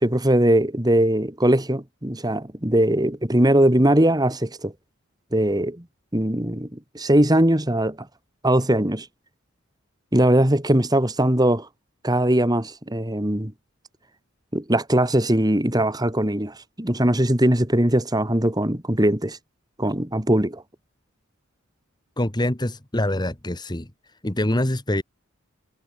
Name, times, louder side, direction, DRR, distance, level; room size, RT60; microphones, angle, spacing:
voice 1, 0.0-4.7 5.3-5.8 6.1-8.1 8.4-9.1 10.1-11.7 12.0-13.5 14.5-19.4 19.8-20.6, right 1 dB, 20° right, 2.1 m, -20 dB
voice 2, 22.2-23.9 24.2-25.0, left 1 dB, 20° left, 1.6 m, -24 dB
head